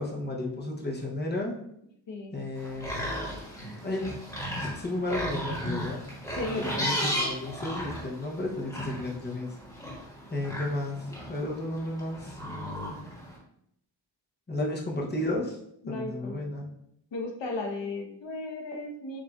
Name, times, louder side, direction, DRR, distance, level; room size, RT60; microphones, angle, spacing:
voice 1, 0.0-1.5 2.3-3.1 3.5-4.1 4.6-6.0 6.6-9.6 10.3-13.0 14.5-15.6 15.9-16.7, left 1 dB, 25° left, -1 dB, 0.8 m, -33 dB
sound 1, 2.5-13.4, equal, 10° left, 1.4 m, -35 dB
voice 2, 6.4-7.1 15.8-16.4 17.1-19.2, left 2 dB, 75° left, 2 dB, 1.0 m, -35 dB
7.2 x 2.6 x 2.4 m, 0.74 s
wide cardioid pair, 140°, 44 cm